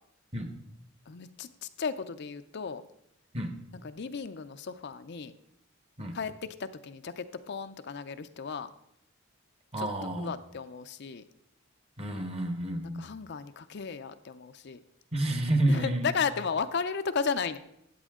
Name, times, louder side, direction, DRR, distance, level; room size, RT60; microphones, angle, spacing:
voice 1, 1.1-2.8 3.8-5.3 6.1-8.7 9.8-9.9 10.1-11.2 12.9-14.8 15.7-17.6, left 5 dB, 60° left, 10 dB, 0.5 m, -34 dB
voice 2, 9.7-10.3 12.0-13.1 15.1-16.1, right 1 dB, 30° right, 7 dB, 1.3 m, -29 dB
13.5 x 8.3 x 3.7 m, 0.77 s
head